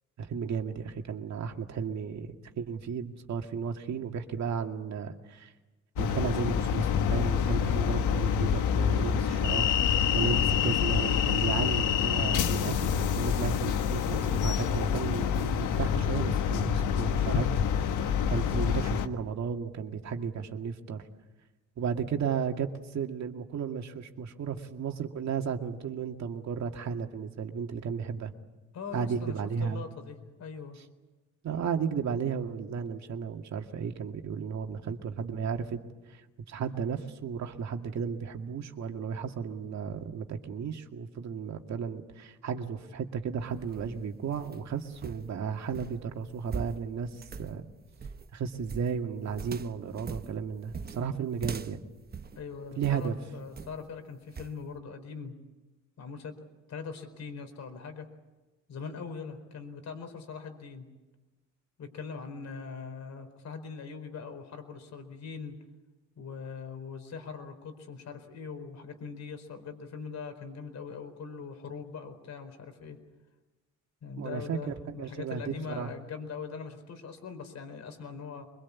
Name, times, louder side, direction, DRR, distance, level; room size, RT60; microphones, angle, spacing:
voice 1, 0.2-5.5 6.0-9.7 10.1-17.5 18.0-21.0 21.8-28.3 28.9-29.8 31.4-35.8 36.1-36.2 36.5-47.6 48.3-51.8 52.8-53.2 74.2-75.9, right 6 dB, 65° right, 4 dB, 2.2 m, -34 dB
sound 1, 6.0-19.1, left 8 dB, 85° left, 1.4 m, -27 dB
voice 2, 28.7-29.3 29.6-30.8 52.3-55.3 56.0-56.3 56.7-58.1 58.7-60.9 61.8-65.5 66.2-73.0 74.0-78.4, left 5 dB, 65° left, 7 dB, 4.6 m, -41 dB
sound 2, 43.4-53.1 53.5-53.9 54.3-54.6, right 5 dB, 30° right, 1.1 m, -42 dB
24.0 x 22.5 x 8.5 m, 1.1 s
cardioid pair, 90°, 30 cm